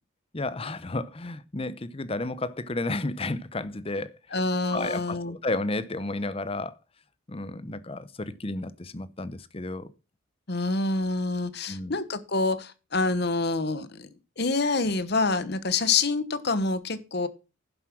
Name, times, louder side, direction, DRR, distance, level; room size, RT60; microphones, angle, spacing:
voice 1, 0.3-6.8 7.3-9.9 11.7-12.0, left 2 dB, 25° left, 0.7 m, -32 dB
voice 2, 4.3-5.4 10.5-14.1 14.4-17.3, left 3 dB, 50° left, 1.1 m, -27 dB
11.0 x 7.5 x 6.0 m
head